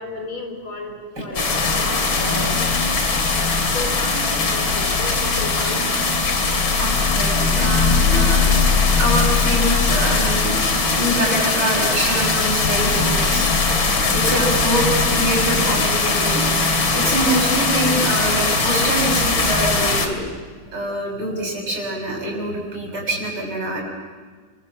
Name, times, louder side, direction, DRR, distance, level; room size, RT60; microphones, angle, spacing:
voice 1, 0.0-2.7 3.4-6.0 12.9-13.3 14.2-14.3 16.4-16.6, left 2 dB, 90° left, 4 dB, 5.3 m, -34 dB
sound 1, 1.4-20.1, left 4 dB, 70° left, 3.5 m, -19 dB
voice 2, 6.8-8.6 8.9-10.5 11.0-13.5 13.9-14.9 15.2-16.4 16.9-20.2 20.7-23.8, right 1 dB, 55° right, 0 dB, 7.2 m, -25 dB
30.0 x 24.5 x 7.4 m, 1.5 s
omnidirectional pair, 2.2 m